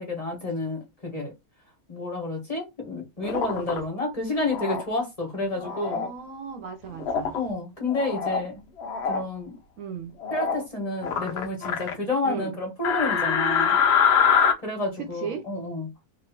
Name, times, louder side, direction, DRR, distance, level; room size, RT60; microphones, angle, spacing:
voice 1, 0.0-1.3 1.9-6.0 7.3-8.6 9.0-9.5 10.3-13.8 14.6-15.9, left 2 dB, 25° left, 1.3 m, -30 dB
sound 1, 3.2-3.8 4.5-4.8 5.6-6.1 7.0-7.4 7.9-8.5 8.8-9.2 10.2-10.6 11.0-11.9 12.8-14.5, left 7 dB, 60° left, 0.7 m, -24 dB
voice 2, 5.6-7.4 9.8-10.1 12.2-12.5 15.0-15.4, right 6 dB, 65° right, 1.2 m, -36 dB
3.1 x 2.6 x 4.2 m
omnidirectional pair, 1.6 m